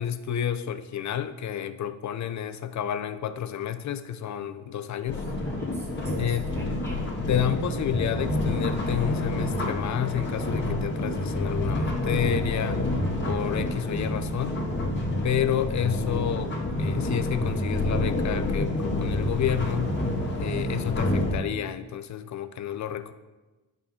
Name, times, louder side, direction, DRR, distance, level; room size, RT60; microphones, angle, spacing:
voice 1, 0.0-5.2 6.2-6.5 7.3-12.8 13.3-14.6 15.2-20.0 20.4-23.1, left 10 dB, 45° left, 12 dB, 0.5 m, -30 dB
sound 1, 5.1-21.4, left 1 dB, 25° left, 1.7 m, -28 dB
voice 2, 5.1-7.2, equal, 5° left, -1 dB, 0.8 m, -45 dB
10.5 x 5.2 x 3.7 m, 1.2 s
cardioid pair, 105°, 40 cm